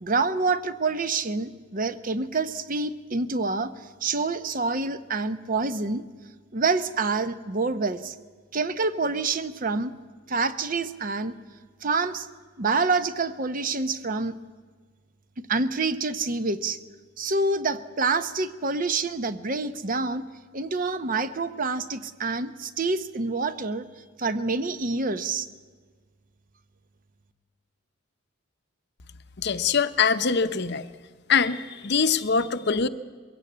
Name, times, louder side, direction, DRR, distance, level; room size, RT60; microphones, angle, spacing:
voice 1, 0.0-6.0 6.5-8.2 8.5-9.9 10.3-11.4 11.8-12.3 12.6-14.3 15.5-16.8 17.2-20.2 20.5-23.9 24.2-25.5, right 3 dB, 40° right, 12 dB, 0.8 m, -27 dB
voice 2, 29.4-30.8 31.3-32.9, left 5 dB, 55° left, 12 dB, 0.8 m, -23 dB
22.0 x 16.5 x 8.5 m, 1.5 s
head